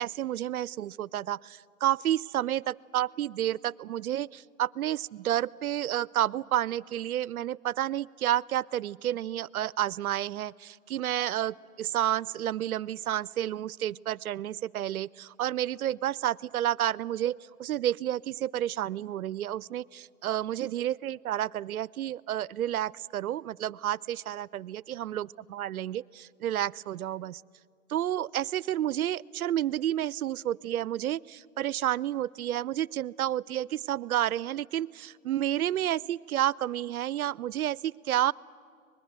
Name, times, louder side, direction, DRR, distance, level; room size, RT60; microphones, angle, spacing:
voice 1, 0.0-27.4 27.9-38.3, right 12 dB, 90° right, 23 dB, 0.6 m, -30 dB
24.5 x 20.5 x 8.1 m, 2.1 s
hypercardioid pair, 165°, 42 cm